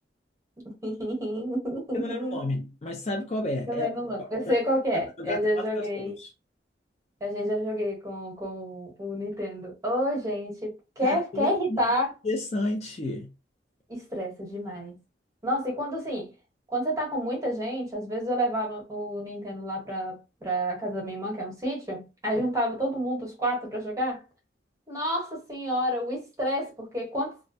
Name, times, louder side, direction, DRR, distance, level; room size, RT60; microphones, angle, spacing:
voice 1, 0.8-2.4 3.7-6.2 7.2-12.1 13.9-15.0 15.4-16.3 16.7-24.2 24.9-27.3, equal, 20° right, 1.0 m, -29 dB
voice 2, 1.9-3.9 4.2-4.6 5.2-6.3 11.0-11.8 12.2-13.3, left 2 dB, 35° left, 0.5 m, -32 dB
2.3 x 2.1 x 2.6 m
head